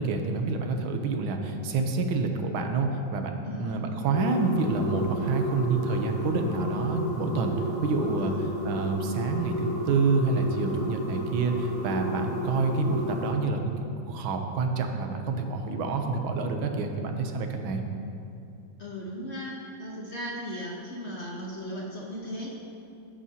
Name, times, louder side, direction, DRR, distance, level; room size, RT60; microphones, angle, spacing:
voice 1, 0.0-7.5 7.8-8.3 8.6-17.8, right 3 dB, 75° right, 4 dB, 1.6 m, -27 dB
voice 2, 3.4-3.8 8.2-8.5 18.8-22.5, equal, 40° left, -3 dB, 1.0 m, -37 dB
sound 1, 4.1-13.3, equal, 65° left, 2.5 m, -33 dB
15.5 x 8.4 x 2.8 m, 2.6 s
omnidirectional pair, 2.2 m